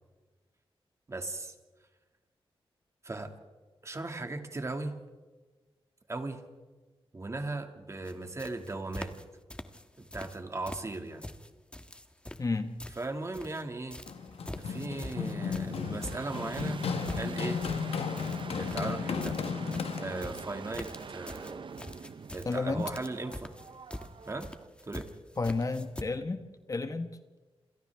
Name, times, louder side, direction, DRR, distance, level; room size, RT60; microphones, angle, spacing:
voice 1, 1.1-1.5 3.0-3.3 3.8-4.9 6.1-6.4 7.1-9.1 10.0-11.2 13.0-14.0 14.6-16.8 17.2-17.6 18.6-19.4 20.0-21.7 22.3-23.6 24.3-24.5 24.9-25.1, right 2 dB, 30° right, 5 dB, 2.1 m, -37 dB
sound 1, 8.0-8.1 8.4-9.2 9.5-10.4 10.7-13.6 13.9-26.0, left 1 dB, 10° left, 1.3 m, -44 dB
voice 2, 12.4-12.7 22.4-22.9 25.4-26.4 26.7-27.1, left 3 dB, 35° left, 8 dB, 1.2 m, -31 dB
sound 2, 13.8-24.7, right 5 dB, 55° right, 0.8 m, -46 dB
Run, 14.1-20.4, left 6 dB, 80° left, 1.1 m, -34 dB
28.0 x 27.5 x 3.5 m, 1.3 s
wide cardioid pair, 105°, 10 cm